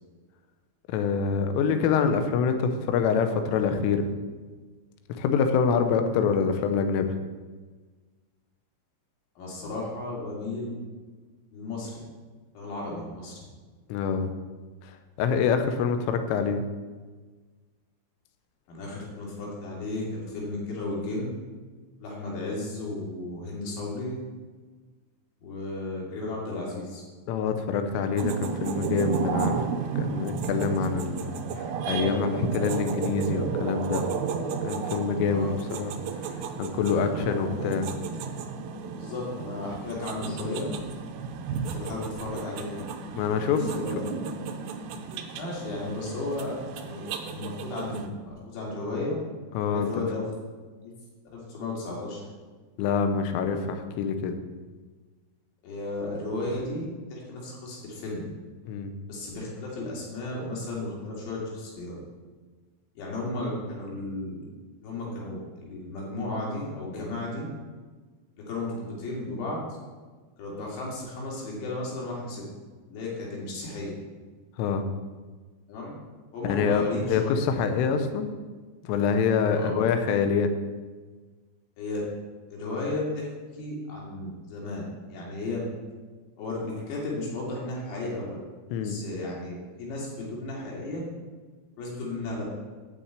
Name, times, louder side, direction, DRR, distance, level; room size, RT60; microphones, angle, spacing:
voice 1, 0.9-4.1 5.2-7.1 13.9-14.3 14.8-16.6 27.3-34.1 34.6-35.5 35.8-35.9 36.2-37.9 43.1-43.7 49.5-49.9 52.8-54.4 58.7-58.9 74.6-74.9 76.4-78.3 78.8-80.5 88.7-89.0, left 6 dB, 80° left, 7 dB, 3.4 m, -26 dB
voice 2, 9.4-10.8 11.5-12.0 12.5-13.4 18.7-21.4 22.0-24.2 25.4-27.0 27.9-28.1 35.3-35.5 36.9-37.7 39.0-40.7 41.7-42.9 43.7-44.3 45.4-49.2 49.7-50.3 50.8-50.9 51.3-52.2 55.6-58.3 59.1-62.0 63.0-64.4 64.8-67.5 68.5-69.6 70.4-72.4 72.9-73.9 75.7-75.9 76.3-77.4 79.5-79.7 81.8-82.0 82.5-83.3 83.5-85.6 86.4-88.4 88.8-91.0 91.8-92.4, left 2 dB, 65° left, -4 dB, 4.9 m, -34 dB
sound 1, 28.2-48.1, right 6 dB, 85° right, 2.5 m, -33 dB
9.7 x 6.0 x 8.3 m, 1.4 s
omnidirectional pair, 5.8 m